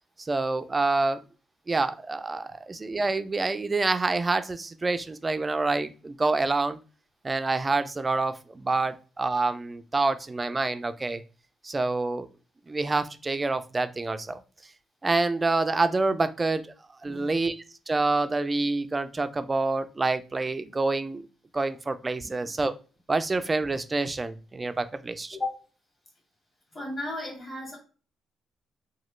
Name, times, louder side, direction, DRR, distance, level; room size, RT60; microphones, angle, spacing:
voice 1, 0.2-1.2 1.7-6.8 7.2-11.2 11.6-12.3 12.7-14.4 15.0-16.7 17.0-21.3 21.5-22.7 23.1-25.4, right 3 dB, 25° right, 11 dB, 0.3 m, -27 dB
voice 2, 26.7-27.8, left 2 dB, 25° left, -2 dB, 1.7 m, -35 dB
3.0 x 2.2 x 3.0 m, 0.36 s
cardioid pair, 90°, 0 cm